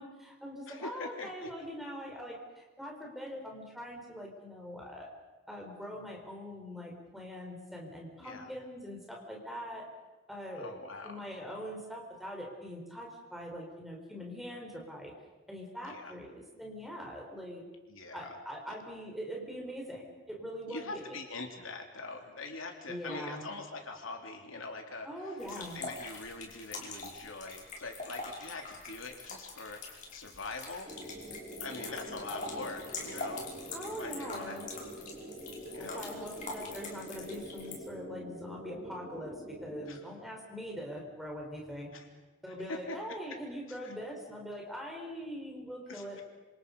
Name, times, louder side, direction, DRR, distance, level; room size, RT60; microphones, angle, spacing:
voice 1, 0.0-5.1 5.5-9.9 10.3-15.1 15.5-17.6 18.1-21.2 22.9-23.5 25.0-25.8 33.7-34.7 35.8-41.9 42.4-46.2, equal, ahead, -1 dB, 4.9 m, -42 dB
voice 2, 0.7-1.5 8.2-8.5 10.5-11.2 15.9-16.1 17.9-18.4 20.7-29.8 30.1-30.9 31.6-33.5 34.0-34.9 35.7-36.1 39.9-40.0 41.9-42.1 42.7-43.0 43.7-43.9 45.9-46.2, left 3 dB, 85° left, 3 dB, 3.2 m, -43 dB
sound 1, 25.4-37.7, left 3 dB, 40° left, 5.4 m, -44 dB
sound 2, 30.8-39.9, right 1 dB, 25° right, 7.7 m, -45 dB
27.0 x 27.0 x 5.5 m, 1.2 s
head